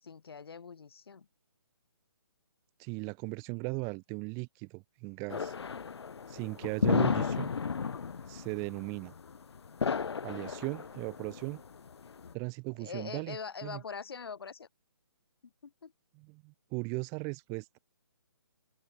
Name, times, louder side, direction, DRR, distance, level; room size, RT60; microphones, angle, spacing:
voice 1, 0.0-1.3 12.8-14.7 15.6-15.9, left 6 dB, 65° left, 3.7 m, -43 dB
voice 2, 2.8-5.5 6.3-7.5 8.3-9.1 10.2-11.6 12.3-13.4 13.6-13.8 16.2-17.8, right 34 dB, 20° right, 1.8 m, -37 dB
sound 1, 5.3-12.3, left 6 dB, 85° left, 0.5 m, -33 dB
figure-of-eight pair, 145°, 14 cm